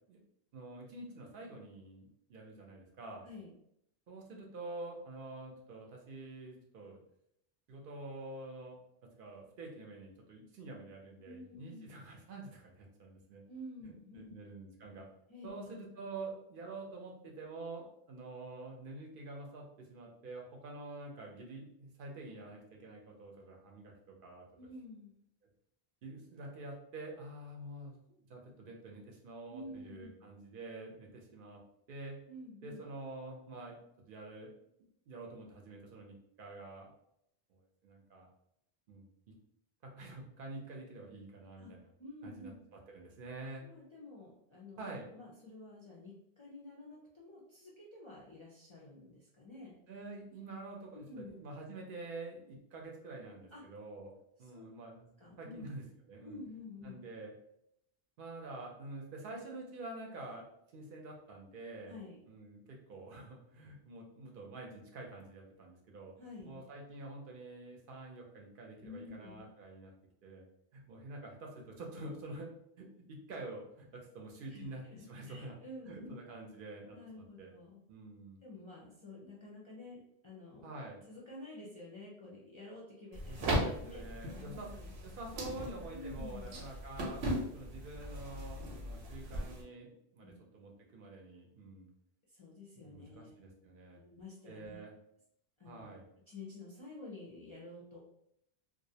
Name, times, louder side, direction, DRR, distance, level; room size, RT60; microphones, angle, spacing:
voice 1, 0.5-3.3 4.1-7.0 7.7-8.8 9.2-13.4 13.8-15.1 15.4-24.4 26.0-27.9 28.3-31.6 31.9-32.2 32.6-33.8 34.1-34.5 35.1-36.9 37.5-38.3 38.9-39.1 39.8-41.9 42.2-43.7 44.8-45.1 49.9-54.1 54.4-55.1 55.4-56.4 56.8-57.3 58.2-60.5 60.7-62.0 62.3-66.1 66.4-69.9 70.2-70.4 70.7-72.5 72.8-75.6 75.8-77.5 77.9-78.4 80.6-81.0 83.2-87.2 87.5-91.9 92.8-94.0 94.5-94.9 95.7-96.0, right 2 dB, 65° right, 0 dB, 0.7 m, -47 dB
voice 2, 11.2-11.9 13.5-14.3 15.3-15.5 24.6-25.1 29.5-30.2 32.3-32.8 41.6-41.7 42.0-42.6 43.6-44.8 45.1-49.8 51.1-51.3 53.5-53.6 54.5-54.7 55.2-55.7 56.2-56.9 61.8-62.2 66.2-66.6 68.8-69.4 74.5-76.2 76.9-77.8 78.4-80.7 81.1-84.0 84.3-84.9 85.9-86.6 90.2-90.4 92.3-93.3 93.9-94.8 95.6-95.9 96.3-98.0, left 2 dB, 45° left, -6 dB, 0.4 m, -50 dB
sound 1, 83.1-89.6, equal, 90° right, 0.9 m, -38 dB
2.4 x 2.0 x 2.6 m, 0.76 s
omnidirectional pair, 1.1 m